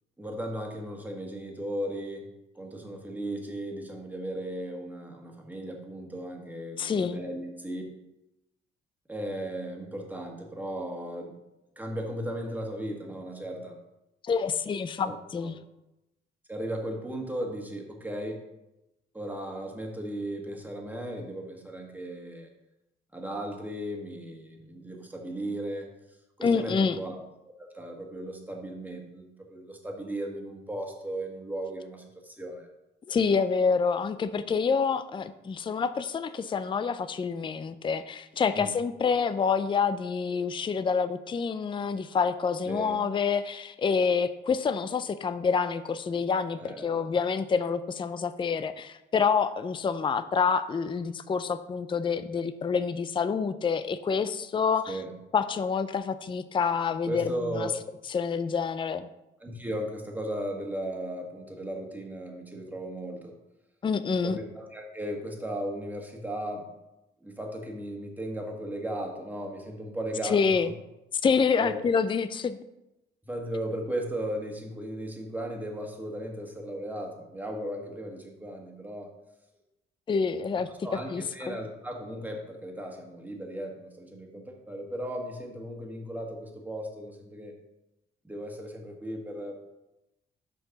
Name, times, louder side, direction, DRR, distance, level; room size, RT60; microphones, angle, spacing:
voice 1, 0.2-2.3 2.5-7.8 9.1-11.4 11.7-13.8 15.0-15.1 15.4-15.5 16.5-18.4 19.1-22.5 23.1-25.9 26.4-27.2 27.4-32.7 38.5-38.7 42.7-43.0 46.6-47.1 54.9-55.1 57.0-57.7 59.4-63.4 64.2-66.7 67.2-70.7 71.5-71.8 73.2-79.1 80.7-87.5 88.2-89.5, right 1 dB, 10° right, 1 dB, 1.7 m, -36 dB
voice 2, 6.8-7.2 14.2-15.6 26.4-27.0 33.1-55.0 55.3-57.7 58.1-59.1 63.8-64.4 70.2-70.7 71.2-72.6 80.1-80.7 81.1-81.5, left 5 dB, 25° left, 12 dB, 0.4 m, -27 dB
6.5 x 4.6 x 5.8 m, 0.94 s
cardioid pair, 90°, 20 cm